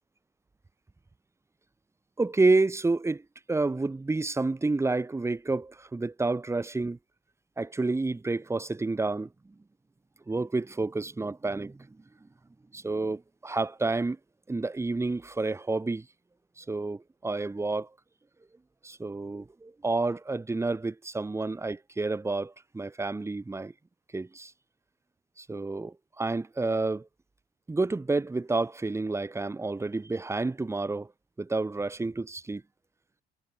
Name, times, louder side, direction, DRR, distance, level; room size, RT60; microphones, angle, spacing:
voice 1, 2.2-3.2 3.5-7.0 7.6-9.3 10.3-11.9 12.7-14.2 14.5-16.1 16.6-17.9 18.8-23.7 24.1-24.5 25.4-27.1 27.7-31.1 31.4-32.6, right 3 dB, 15° right, 3.7 m, -29 dB
cardioid pair, 110°, 17 cm